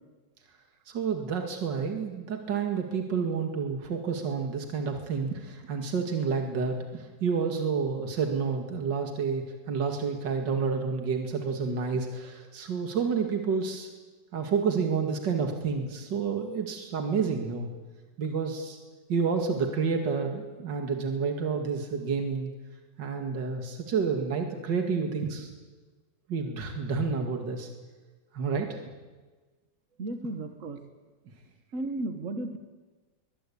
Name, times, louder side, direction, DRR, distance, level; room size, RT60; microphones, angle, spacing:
voice 1, 0.9-13.9 14.3-17.7 18.2-18.8 19.1-22.5 23.0-25.5 26.3-27.7 28.3-28.8, right 5 dB, 75° right, 4 dB, 2.7 m, -29 dB
voice 2, 30.0-30.8 31.7-32.6, right 2 dB, 45° right, 8 dB, 1.8 m, -34 dB
23.0 x 21.0 x 8.7 m, 1.3 s
omnidirectional pair, 2.0 m